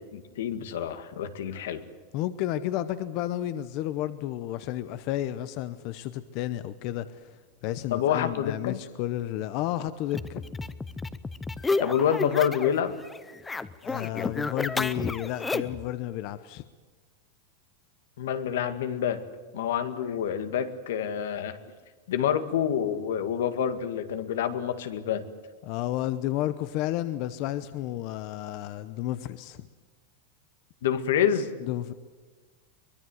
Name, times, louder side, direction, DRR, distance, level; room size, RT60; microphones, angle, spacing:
voice 1, 0.1-1.8 7.9-8.8 11.8-13.0 18.2-19.2 19.5-21.6 22.1-25.3 30.8-31.5, left 9 dB, 80° left, 10 dB, 2.0 m, -27 dB
voice 2, 2.1-7.2 7.6-10.4 13.8-16.6 25.6-29.7 31.6-31.9, left 13 dB, 40° left, 13 dB, 0.8 m, -32 dB
sound 1, 10.1-12.8 13.1-15.8, left 3 dB, 10° left, 0.7 m, -31 dB
23.5 x 21.0 x 8.0 m, 1.4 s
supercardioid pair, 165°, 0 cm